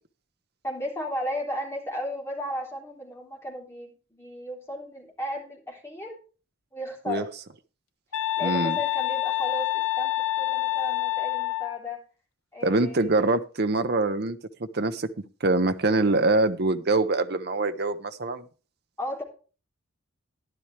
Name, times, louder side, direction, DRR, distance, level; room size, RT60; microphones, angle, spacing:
voice 1, 0.6-6.2 6.7-7.3 8.4-12.0 12.5-13.3 19.0-19.2, left 1 dB, 10° left, -2 dB, 3.6 m, -35 dB
sound 1, 8.1-11.8, left 15 dB, 75° left, 0.9 m, -27 dB
voice 2, 8.4-8.8 12.6-14.4 14.7-15.1 15.4-18.4, right 2 dB, 50° right, 9 dB, 0.8 m, -24 dB
12.0 x 11.0 x 3.3 m, 0.35 s
head